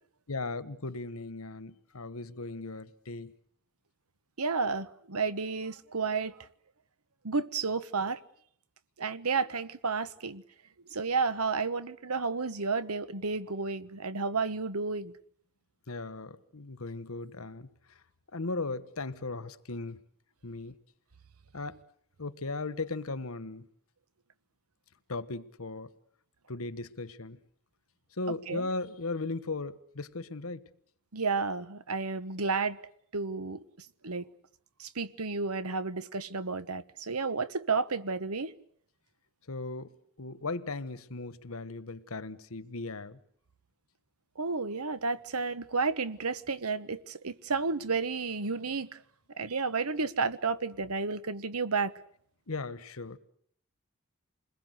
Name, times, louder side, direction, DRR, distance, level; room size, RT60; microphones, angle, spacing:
voice 1, 0.3-3.3 15.9-17.7 18.3-20.0 20.4-20.8 21.5-21.8 22.2-23.7 25.1-25.9 26.5-27.4 28.2-30.6 39.5-39.9 40.2-43.2 52.5-53.2, left 3 dB, 75° left, 1.3 m, -37 dB
voice 2, 4.4-6.3 7.2-8.2 9.0-10.4 10.9-15.1 28.5-28.7 31.1-32.8 33.1-33.6 34.0-34.2 34.8-38.5 44.4-48.9 49.4-51.9, right 4 dB, 90° right, 1.3 m, -31 dB
29.0 x 21.0 x 8.1 m
head